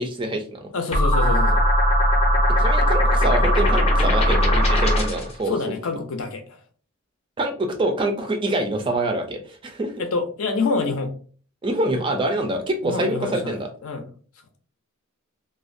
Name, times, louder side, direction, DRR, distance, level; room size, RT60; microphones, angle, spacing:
voice 1, 0.0-0.7 2.6-5.7 7.4-9.9 11.6-13.7, right 1 dB, 25° right, 4 dB, 0.3 m, -25 dB
voice 2, 0.7-1.7 5.5-6.6 10.0-11.1 12.8-13.6 13.8-14.0, left 4 dB, 75° left, 6 dB, 0.5 m, -26 dB
sound 1, 0.9-5.3, equal, 30° left, 0.5 m, -18 dB
2.4 x 2.1 x 2.5 m, 0.41 s
head